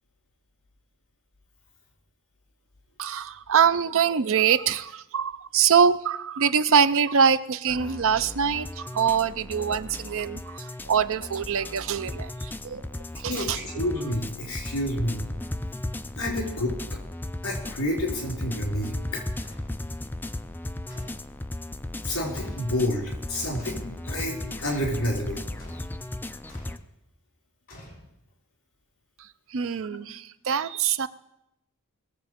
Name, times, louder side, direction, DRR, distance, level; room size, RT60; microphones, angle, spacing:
voice 1, 3.0-12.9 13.2-13.6 29.5-31.1, right 7 dB, 60° right, 14 dB, 0.5 m, -24 dB
sound 1, 7.7-26.8, left 1 dB, 10° left, 0.4 m, -36 dB
voice 2, 13.3-15.3 16.2-17.0 17.4-19.2 22.0-25.4 29.9-30.0, left 1 dB, 65° left, -1 dB, 5.0 m, -29 dB
sound 2, 19.4-19.8 20.9-21.3 22.3-22.7 23.6-23.9 24.6-24.9 25.6-26.0 26.5-26.8 27.7-28.3, equal, 40° left, 4.7 m, -48 dB
20.5 x 7.5 x 5.2 m, 0.84 s
head